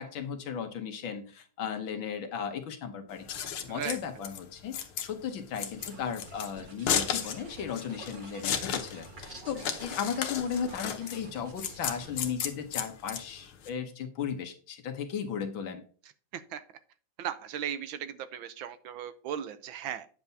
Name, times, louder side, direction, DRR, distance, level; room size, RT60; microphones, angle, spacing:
voice 1, 0.0-3.3 3.7-15.8, left 7 dB, 70° left, 6 dB, 1.7 m, -36 dB
Scissors, 3.1-13.7, left 8 dB, 90° left, 1.8 m, -34 dB
sound 1, 5.7-12.3, right 2 dB, 35° right, 0.8 m, -49 dB
voice 2, 17.2-20.1, right 9 dB, 75° right, 12 dB, 1.3 m, -37 dB
9.2 x 7.3 x 2.7 m, 0.41 s
omnidirectional pair, 2.3 m